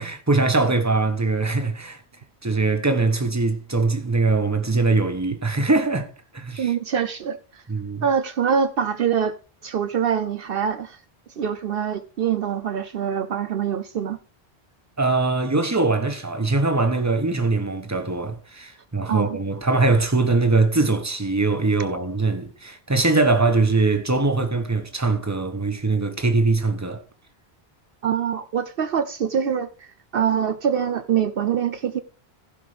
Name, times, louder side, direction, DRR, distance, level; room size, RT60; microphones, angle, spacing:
voice 1, 0.0-2.0 2.4-6.1 6.3-6.7 7.7-8.0 15.0-27.0, right 3 dB, 15° right, 1.2 m, -22 dB
voice 2, 6.6-7.6 8.0-9.3 9.6-11.0 11.4-14.2 19.1-19.4 28.0-32.0, right 8 dB, 65° right, 0.8 m, -24 dB
15.0 x 5.2 x 5.0 m
omnidirectional pair, 1.1 m